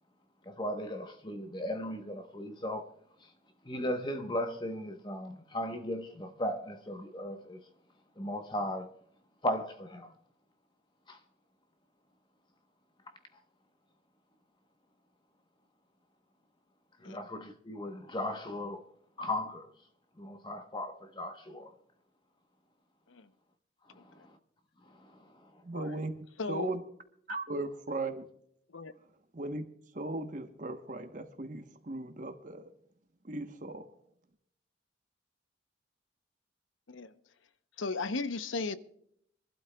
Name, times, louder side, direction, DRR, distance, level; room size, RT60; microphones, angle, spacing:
voice 1, 0.5-2.9 3.2-3.3 3.6-7.6 8.2-8.9 9.4-10.1 11.1-11.2 17.0-18.8 19.2-19.7 20.2-21.7 23.9-24.4 24.9-25.6, left 1 dB, 25° left, 1.0 m, -37 dB
voice 2, 25.6-26.1 26.5-26.8 27.3-28.3 29.3-29.6 29.9-32.7 33.2-33.9, right 2 dB, 40° right, 1.0 m, -37 dB
voice 3, 26.4-26.7 28.7-28.9 36.9-37.1 37.8-38.8, left 3 dB, 85° left, 0.8 m, -35 dB
25.5 x 12.0 x 2.3 m
head